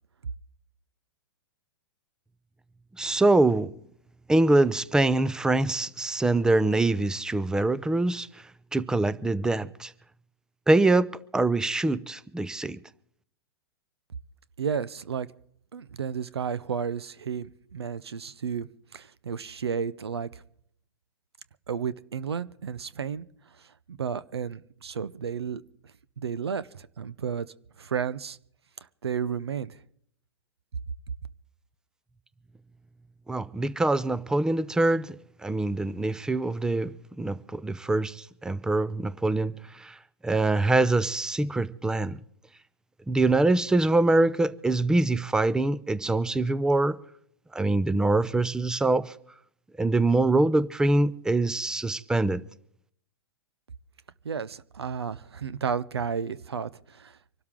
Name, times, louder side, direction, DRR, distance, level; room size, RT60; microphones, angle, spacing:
voice 1, 3.0-3.7 4.3-8.3 8.7-9.9 10.7-12.8 33.3-36.9 37.2-40.0 40.2-42.2 43.1-47.0 47.5-49.1 49.8-52.4, right 2 dB, 5° right, 0.5 m, -24 dB
voice 2, 14.6-15.3 15.7-20.4 21.7-23.3 23.6-25.6 26.2-28.4 29.0-29.8 54.2-57.2, right 7 dB, 85° right, 0.7 m, -32 dB
25.0 x 12.5 x 3.7 m
hypercardioid pair, 115°, 13 cm